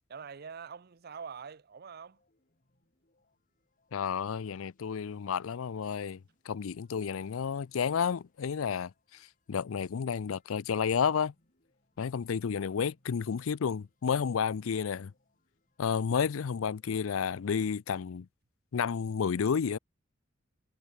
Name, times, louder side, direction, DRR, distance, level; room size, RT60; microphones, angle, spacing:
voice 1, 0.1-2.2, right 6 dB, 50° right, 0.6 m, -44 dB
sound 1, 1.8-17.8, left 1 dB, 40° left, 6.2 m, -75 dB
voice 2, 3.9-6.2 6.5-9.2 9.5-11.3 12.0-15.1 15.8-18.3 18.7-19.8, left 6 dB, 80° left, 0.5 m, -31 dB
head